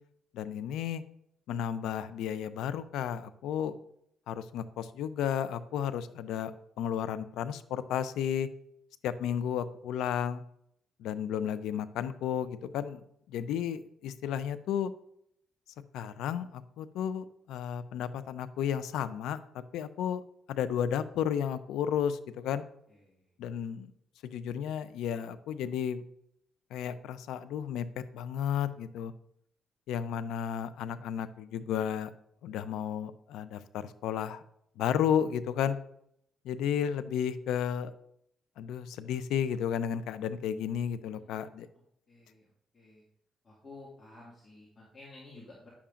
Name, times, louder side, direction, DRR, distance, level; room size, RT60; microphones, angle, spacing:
voice 1, 0.3-1.0 1.5-3.8 4.3-6.5 6.8-8.5 9.0-10.4 11.0-13.0 13.3-14.9 15.9-20.2 20.5-22.6 23.4-23.9 24.2-26.0 26.7-29.1 29.9-32.1 32.4-34.4 34.8-35.8 36.4-37.9 38.6-41.7, left 9 dB, 85° left, 13 dB, 0.5 m, -33 dB
voice 2, 22.9-23.3 41.1-41.5 42.1-43.0 43.4-45.7, left 2 dB, 35° left, -5 dB, 2.0 m, -53 dB
9.9 x 7.1 x 2.5 m, 0.72 s
cardioid pair, 90°, 0 cm